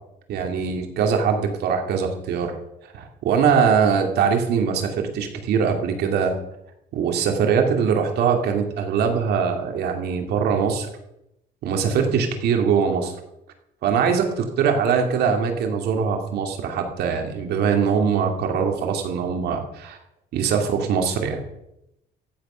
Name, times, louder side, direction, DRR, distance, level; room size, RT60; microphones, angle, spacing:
voice 1, 0.3-2.5 2.9-6.3 6.9-10.9 11.6-13.1 13.8-20.0 20.3-21.4, right 6 dB, 75° right, 4 dB, 2.7 m, -22 dB
14.5 x 8.5 x 5.7 m, 0.86 s
cardioid pair, 110°, 17 cm